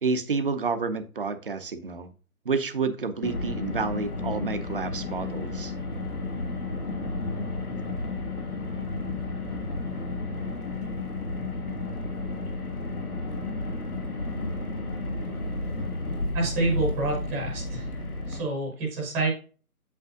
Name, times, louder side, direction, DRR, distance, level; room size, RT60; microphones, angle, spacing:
voice 1, 0.0-2.1 2.4-5.7, right 4 dB, 40° right, 10 dB, 0.8 m, -29 dB
Car, 3.2-18.4, left 2 dB, 75° left, 2.1 m, -32 dB
voice 2, 16.3-17.9 18.3-19.3, right 2 dB, 5° right, -4 dB, 1.0 m, -28 dB
8.3 x 7.1 x 2.5 m, 0.37 s
figure-of-eight pair, 145°, 44 cm